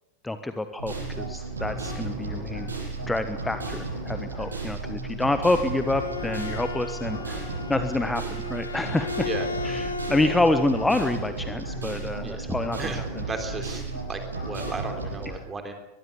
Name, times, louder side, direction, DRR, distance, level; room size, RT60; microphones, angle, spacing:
voice 1, 0.2-2.7 3.0-9.3 9.6-13.2, left 2 dB, 5° left, 9 dB, 1.3 m, -27 dB
sound 1, 0.8-15.3, right 3 dB, 75° right, 7.9 m, -34 dB
Bowed string instrument, 5.4-10.9, left 4 dB, 75° left, 2.8 m, -35 dB
voice 2, 12.8-13.8 14.1-15.8, right 3 dB, 15° right, 5 dB, 3.6 m, -35 dB
22.5 x 22.5 x 7.0 m, 0.92 s
figure-of-eight pair, 90°, 0 cm